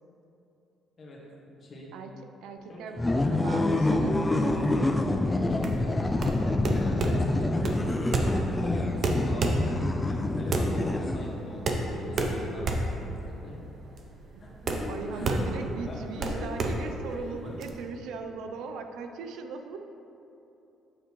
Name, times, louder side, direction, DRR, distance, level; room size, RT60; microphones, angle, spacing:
voice 1, 1.6-1.9 2.7-2.9 3.3-3.7 5.5-6.1 6.6-9.7 10.0-13.6 14.4-16.6 17.1-17.6, left 1 dB, 40° left, -4 dB, 1.6 m, -42 dB
voice 2, 2.4-4.6 6.7-6.9 14.9-19.8, right 4 dB, 85° right, 6 dB, 0.5 m, -39 dB
sound 1, 3.0-11.5, left 2 dB, 15° left, 0.3 m, -27 dB
sound 2, 5.5-17.7, right 2 dB, 45° right, 0.7 m, -30 dB
7.9 x 6.7 x 3.1 m, 2.9 s
cardioid pair, 135°, 0 cm